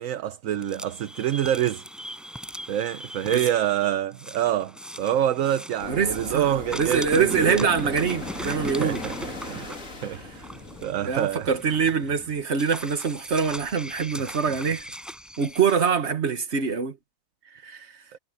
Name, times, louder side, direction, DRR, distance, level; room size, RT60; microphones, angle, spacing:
voice 1, 0.0-1.8 2.7-7.7 8.4-9.7 10.0-10.5 10.8-11.5 14.2-14.3, right 11 dB, 65° right, 1.1 m, -27 dB
sound 1, 0.5-6.4 6.7-15.9, equal, ahead, 5.2 m, -40 dB
sound 2, 5.8-10.9, left 3 dB, 60° left, 3.5 m, -38 dB
voice 2, 5.9-6.5 6.7-9.0 11.0-14.9 15.4-17.0 17.6-17.9, right 6 dB, 50° right, 1.7 m, -24 dB
omnidirectional pair, 1.5 m